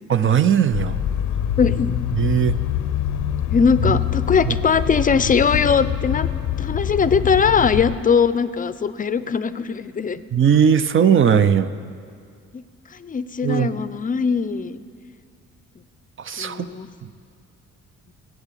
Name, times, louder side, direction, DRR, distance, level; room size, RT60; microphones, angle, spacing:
voice 1, 0.1-1.0 2.1-2.6 3.8-4.0 4.5-4.6 10.3-11.7 13.4-13.7 16.2-16.7, right 8 dB, 40° right, 11 dB, 0.7 m, -18 dB
sound 1, 0.7-8.0, left 10 dB, 75° left, 0.7 m, -25 dB
voice 2, 1.6-2.0 3.5-6.3 6.6-10.2 12.5-12.6 13.0-14.8 16.4-16.9, left 6 dB, 30° left, 14 dB, 0.6 m, -20 dB
18.5 x 8.1 x 7.5 m, 2.2 s
cardioid pair, 90°, 30 cm